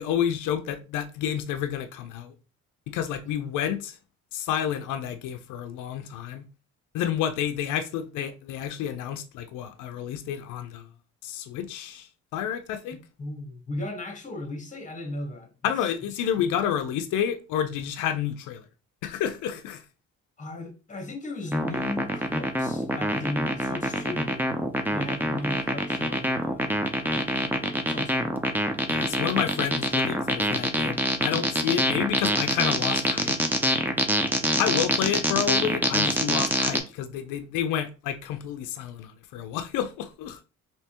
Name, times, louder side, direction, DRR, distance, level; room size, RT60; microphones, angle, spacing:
voice 1, 0.0-2.3 2.9-4.0 4.3-6.4 6.9-10.9 11.2-13.0 15.6-18.6 19.0-19.8 28.9-33.4 34.6-40.4, left 9 dB, 90° left, 0.5 m, -30 dB
voice 2, 13.2-15.7 16.4-16.5 20.4-24.5 24.9-28.3, left 2 dB, 25° left, 1.1 m, -36 dB
sound 1, 21.5-36.8, equal, 5° right, 0.5 m, -25 dB
3.3 x 2.8 x 2.8 m
cardioid pair, 90°, 30 cm